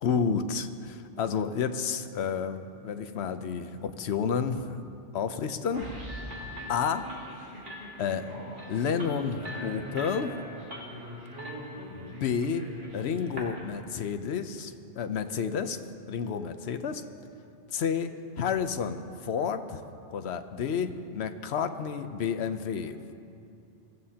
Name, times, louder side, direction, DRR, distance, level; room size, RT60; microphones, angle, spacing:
voice 1, 0.0-4.8 5.1-5.9 6.7-7.0 8.0-8.2 8.7-10.4 11.9-12.6 12.9-15.8 16.1-17.0 17.7-18.1 18.4-19.8 20.1-23.0, left 6 dB, 65° left, 9 dB, 0.9 m, -30 dB
sound 1, 5.7-14.0, equal, 80° right, 3.3 m, -43 dB
sound 2, 6.1-13.6, left 1 dB, 45° right, 2.2 m, -44 dB
23.0 x 14.5 x 2.9 m, 2.7 s
omnidirectional pair, 1.2 m